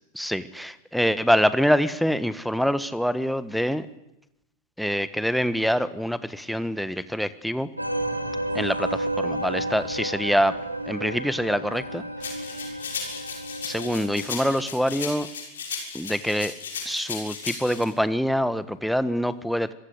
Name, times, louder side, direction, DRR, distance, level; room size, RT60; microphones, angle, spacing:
voice 1, 0.1-3.9 4.8-7.7 8.5-10.6 10.9-12.0 13.6-15.3 15.9-16.5 16.8-19.7, equal, ahead, 14 dB, 1.4 m, -25 dB
sound 1, 7.8-14.6, right 1 dB, 85° right, 3.3 m, -32 dB
sound 2, 12.2-17.8, left 6 dB, 65° left, 6.4 m, -35 dB
25.5 x 23.0 x 8.2 m, 0.88 s
figure-of-eight pair, 90°, 0 cm